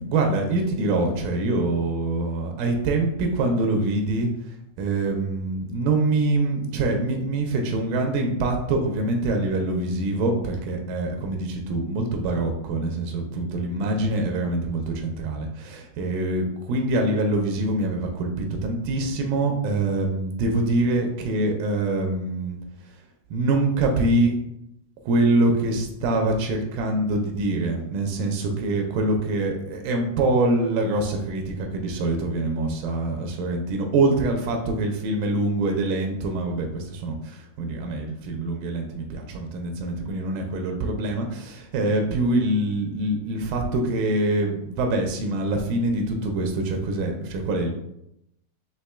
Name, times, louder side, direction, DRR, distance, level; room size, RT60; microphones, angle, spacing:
voice 1, 0.0-4.3 4.8-22.6 23.3-24.3 25.0-47.7, right 2 dB, 90° right, 2 dB, 2.3 m, -24 dB
6.7 x 2.9 x 2.2 m, 0.80 s
omnidirectional pair, 3.8 m